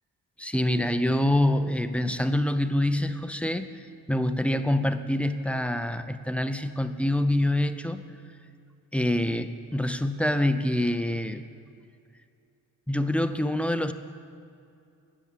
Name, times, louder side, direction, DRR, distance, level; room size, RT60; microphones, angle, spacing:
voice 1, 0.4-8.0 8.9-11.4 12.9-13.9, left 1 dB, 5° left, 9 dB, 0.4 m, -26 dB
18.0 x 6.9 x 7.4 m, 2.5 s
wide cardioid pair, 155°, 34 cm